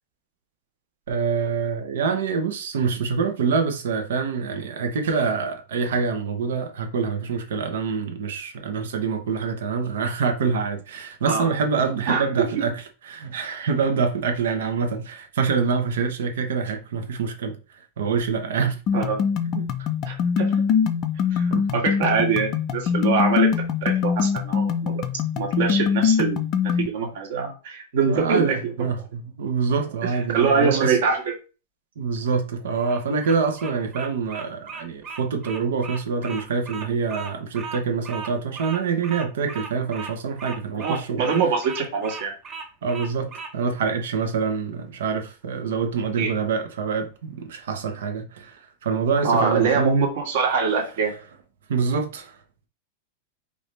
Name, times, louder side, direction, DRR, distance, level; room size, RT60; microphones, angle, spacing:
voice 1, 1.1-12.8 13.1-17.6 18.0-18.8 19.5-19.9 21.5-21.8 28.1-31.0 32.0-41.2 42.8-48.5 48.8-49.9 51.7-52.3, right 5 dB, 85° right, 1.1 m, -26 dB
voice 2, 12.1-12.6 18.9-19.2 20.0-20.6 21.3-23.5 23.8-25.0 25.3-26.4 26.7-28.7 30.0-31.3 40.7-42.3 46.2-46.3 49.2-51.1, right 5 dB, 55° right, 1.6 m, -24 dB
sound 1, 18.9-26.9, left 7 dB, 25° left, 0.4 m, -23 dB
Bird vocalization bird call bird song, 32.7-43.5, right 5 dB, 20° right, 0.6 m, -37 dB
4.9 x 2.8 x 3.2 m
supercardioid pair, 175°, 0 cm